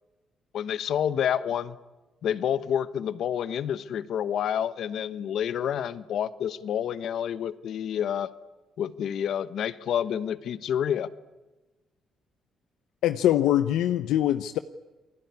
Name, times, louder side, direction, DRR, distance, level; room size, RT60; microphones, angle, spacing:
voice 1, 0.5-1.8 2.2-8.3 8.8-11.1, left 9 dB, 70° left, 14 dB, 1.2 m, -28 dB
voice 2, 13.0-14.6, left 12 dB, 85° left, 10 dB, 0.9 m, -23 dB
29.0 x 20.5 x 9.7 m, 1.1 s
cardioid pair, 90°, 0 cm